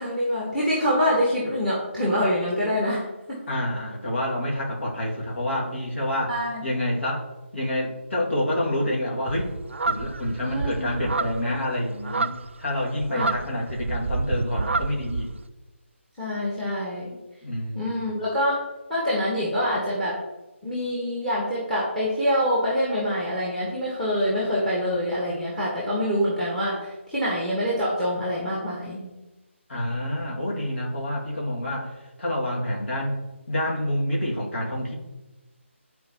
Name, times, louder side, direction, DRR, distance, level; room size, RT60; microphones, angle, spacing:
voice 1, 0.0-3.4 6.3-6.6 10.4-10.9 13.1-13.3 16.2-17.1 17.7-18.6 18.9-20.2 20.6-29.1, equal, 5° left, -5 dB, 1.1 m, -25 dB
voice 2, 3.5-7.3 7.5-9.5 9.8-15.3 17.4-18.1 29.7-31.9 32.2-33.2 33.5-34.9, left 1 dB, 65° left, -3 dB, 2.1 m, -28 dB
sound 1, 9.3-15.4, right 3 dB, 65° right, 0.4 m, -29 dB
9.2 x 4.4 x 2.9 m, 1.1 s
figure-of-eight pair, 155°, 7 cm